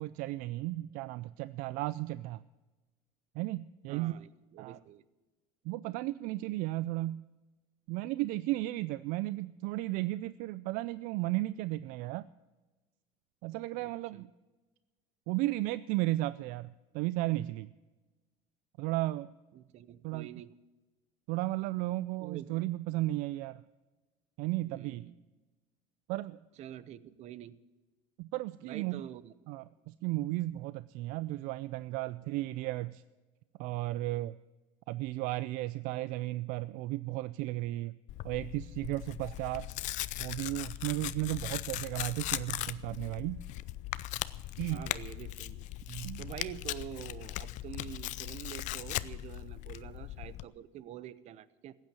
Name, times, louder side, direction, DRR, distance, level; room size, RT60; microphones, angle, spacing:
voice 1, 0.0-2.4 3.4-4.1 4.6-4.8 5.6-7.2 7.9-12.3 13.4-14.3 15.3-17.7 18.8-19.3 20.0-20.3 21.3-23.6 24.4-25.1 26.1-26.4 28.2-29.0 29.5-33.0 33.6-34.4 34.9-38.0 38.2-39.7 40.2-43.4 44.6-44.9 45.9-46.2, right 18 dB, 70° right, 17 dB, 0.4 m, -34 dB
voice 2, 3.9-5.0 13.7-14.2 19.5-20.5 22.2-22.5 24.7-25.1 26.6-27.6 28.6-29.3 44.7-45.6 46.2-51.8, right 11 dB, 50° right, 18 dB, 0.8 m, -46 dB
Tearing, 38.1-50.4, left 16 dB, 55° left, 0.5 m, -39 dB
15.0 x 9.0 x 9.2 m, 1.2 s
cardioid pair, 130°, 15 cm